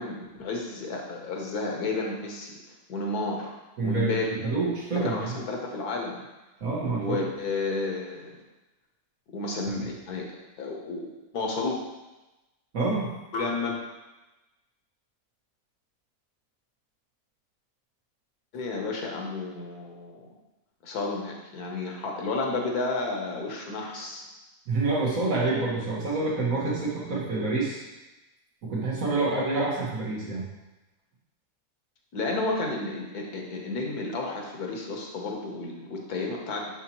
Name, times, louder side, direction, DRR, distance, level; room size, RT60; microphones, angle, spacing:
voice 1, 0.0-2.5 2.9-3.5 3.8-4.4 4.9-6.2 6.9-8.4 9.3-10.3 10.6-11.1 11.3-11.8 13.3-13.8 18.5-20.3 20.8-24.3 32.1-36.7, left 3 dB, 85° left, 0 dB, 1.6 m, -31 dB
voice 2, 3.8-4.1 4.4-5.2 6.6-7.3 12.7-13.1 24.7-27.8 28.6-30.5, right 3 dB, 60° right, -6 dB, 1.9 m, -27 dB
6.3 x 5.6 x 3.0 m, 1.1 s
omnidirectional pair, 1.6 m